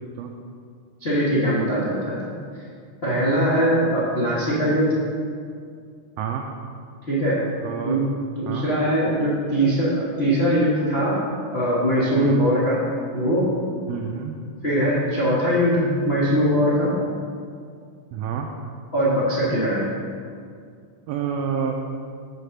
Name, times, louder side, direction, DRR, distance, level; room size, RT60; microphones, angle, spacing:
voice 1, 1.0-2.3 3.0-5.0 7.1-7.4 7.8-8.0 8.3-11.2 11.5-12.8 13.1-13.5 14.6-17.0 18.9-19.9, equal, 75° left, -9 dB, 0.5 m, -21 dB
voice 2, 6.2-6.5 7.6-8.0 8.5-8.7 12.2-12.4 13.9-14.4 18.1-18.5 21.1-21.8, right 7 dB, 90° right, 3 dB, 1.4 m, -28 dB
6.5 x 4.8 x 6.6 m, 2.2 s
omnidirectional pair, 3.5 m